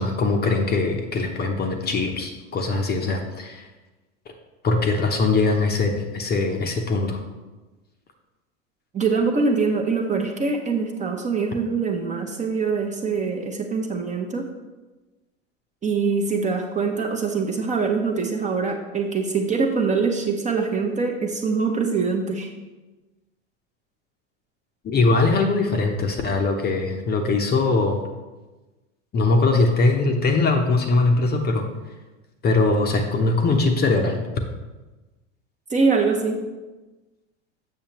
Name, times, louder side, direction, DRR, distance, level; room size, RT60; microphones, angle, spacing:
voice 1, 0.0-3.7 4.6-7.2 24.8-28.0 29.1-31.7 32.4-34.2, left 3 dB, 25° left, 4 dB, 0.8 m, -21 dB
voice 2, 8.9-14.5 15.8-22.5 35.7-36.4, right 4 dB, 20° right, 2 dB, 0.8 m, -23 dB
7.4 x 6.4 x 3.0 m, 1.2 s
hypercardioid pair, 90°, 37 cm